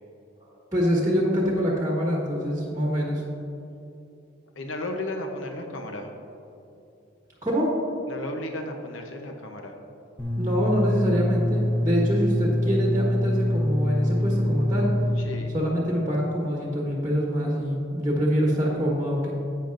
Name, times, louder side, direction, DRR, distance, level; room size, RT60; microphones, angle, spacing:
voice 1, 0.4-3.2 7.4-7.7 10.3-14.9 15.5-19.3, equal, 15° right, -4 dB, 1.2 m, -25 dB
voice 2, 4.5-6.1 8.1-9.7 15.2-15.5, left 1 dB, 85° left, 3 dB, 0.9 m, -34 dB
sound 1, 10.2-15.2, left 1 dB, 5° left, 0.9 m, -24 dB
11.5 x 8.4 x 2.6 m, 2.8 s
head